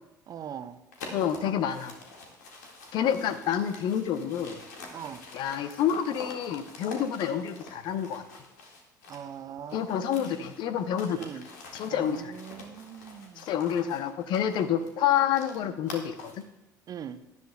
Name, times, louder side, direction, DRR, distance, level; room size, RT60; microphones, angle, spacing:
voice 1, 0.3-0.8 4.9-5.3 9.1-10.5 11.1-11.5 11.9-13.5 16.9-17.2, right 8 dB, 40° right, 12 dB, 0.7 m, -41 dB
sound 1, 0.9-9.4 9.7-16.5, left 3 dB, 70° left, 1.8 m, -47 dB
voice 2, 1.1-1.9 2.9-4.6 5.3-8.2 9.7-11.2 11.7-12.3 13.4-16.3, left 9 dB, 50° left, 11 dB, 0.8 m, -28 dB
17.0 x 11.0 x 2.3 m, 0.95 s
figure-of-eight pair, 60°, 10 cm